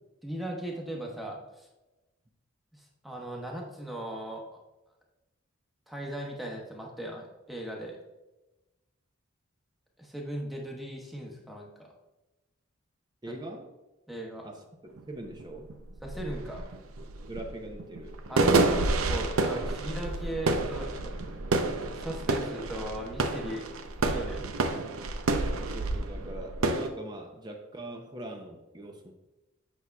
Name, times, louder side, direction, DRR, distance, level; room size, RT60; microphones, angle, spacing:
voice 1, 0.2-1.7 2.7-4.6 5.9-8.0 10.0-11.9 13.3-13.4 14.1-14.5 16.0-16.7 18.3-21.2 22.0-23.7 24.0-24.4, right 1 dB, ahead, -1 dB, 1.0 m, -38 dB
voice 2, 13.2-13.7 14.4-14.7 15.1-15.7 17.3-18.2 25.7-29.1, right 1 dB, 20° right, 3 dB, 0.6 m, -41 dB
sound 1, 15.0-15.1 15.4-26.9, right 3 dB, 85° right, 0.6 m, -29 dB
8.3 x 6.0 x 2.3 m, 1.0 s
head